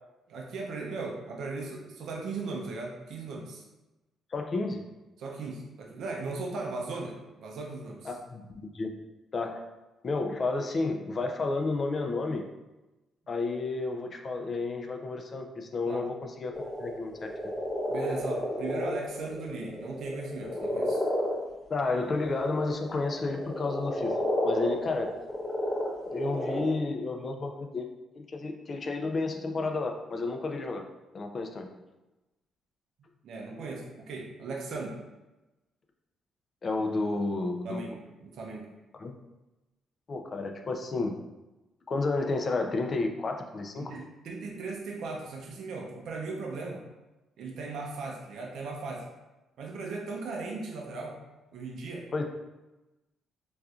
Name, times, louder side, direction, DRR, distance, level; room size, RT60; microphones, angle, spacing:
voice 1, 0.3-3.6 5.2-8.1 15.9-16.0 17.9-21.0 33.2-35.0 37.6-38.7 43.8-46.8 47.4-49.0 49.6-51.2 51.5-52.1, right 3 dB, 75° right, -1 dB, 0.5 m, -37 dB
voice 2, 4.3-4.9 8.0-9.0 9.3-9.6 10.0-12.4 13.3-16.5 16.8-17.3 21.7-24.2 24.4-25.1 26.1-27.9 28.1-30.9 31.1-31.7 36.6-37.8 38.9-39.2 40.1-41.2 41.9-43.9 52.1-52.4, left 3 dB, 40° left, 4 dB, 0.4 m, -31 dB
sound 1, 16.5-21.3 22.1-26.8, left 1 dB, 25° left, 0.8 m, -32 dB
4.1 x 2.3 x 2.4 m, 1.0 s
cardioid pair, 90°, 0 cm